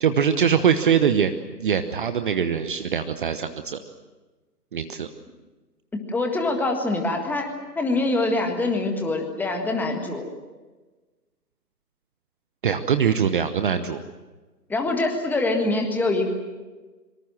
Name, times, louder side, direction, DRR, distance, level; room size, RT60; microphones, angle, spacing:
voice 1, 0.0-3.8 4.7-5.1 12.6-14.0, right 7 dB, 30° right, 9 dB, 1.0 m, -22 dB
voice 2, 5.9-10.2 14.7-16.3, left 2 dB, 5° left, 3 dB, 1.6 m, -24 dB
25.5 x 24.0 x 7.5 m, 1.2 s
figure-of-eight pair, 140°, 49 cm